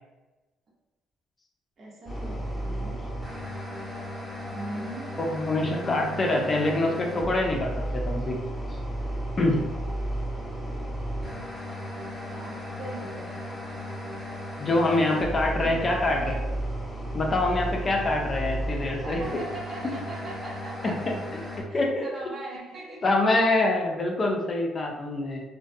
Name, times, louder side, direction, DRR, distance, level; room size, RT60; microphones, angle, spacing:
voice 1, 1.8-3.1 4.5-5.2 12.3-13.5 15.6-16.5 19.0-20.9 21.7-23.0, right 2 dB, 45° right, -3 dB, 0.8 m, -40 dB
sound 1, 2.1-21.6, equal, ahead, 0.9 m, -34 dB
voice 2, 5.3-8.4 9.4-9.6 14.6-16.3 17.1-19.2 21.7-22.1 23.0-25.4, left 2 dB, 35° left, 0 dB, 0.5 m, -25 dB
2.3 x 2.2 x 2.6 m, 1.1 s
cardioid pair, 85°, 0 cm